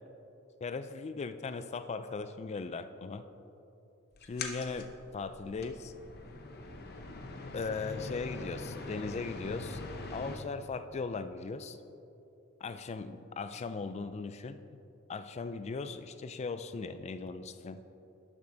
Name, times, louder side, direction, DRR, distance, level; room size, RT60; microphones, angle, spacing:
voice 1, 0.6-3.3 4.2-4.9 5.1-5.9 7.5-9.8 10.1-11.8 12.6-14.8 15.1-17.8, left 4 dB, 30° left, 11 dB, 0.3 m, -38 dB
sound 1, 4.1-10.4, left 3 dB, 45° left, 0.8 m, -43 dB
11.5 x 7.3 x 3.9 m, 2.8 s
head